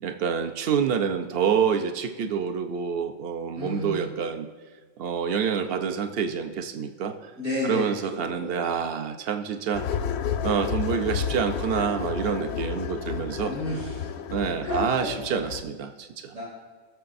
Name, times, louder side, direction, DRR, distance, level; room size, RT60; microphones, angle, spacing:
voice 1, 0.0-4.5 5.0-7.3 7.6-9.9 10.4-13.5 14.3-16.3, right 7 dB, 55° right, 7 dB, 0.9 m, -27 dB
voice 2, 3.6-4.1 7.4-8.6 13.4-14.1 14.6-15.1 16.3-16.4, left 1 dB, 70° right, -8 dB, 3.3 m, -31 dB
sound 1, 9.7-15.6, left 8 dB, 65° left, 0.7 m, -31 dB
17.5 x 6.9 x 2.6 m, 1.5 s
omnidirectional pair, 1.4 m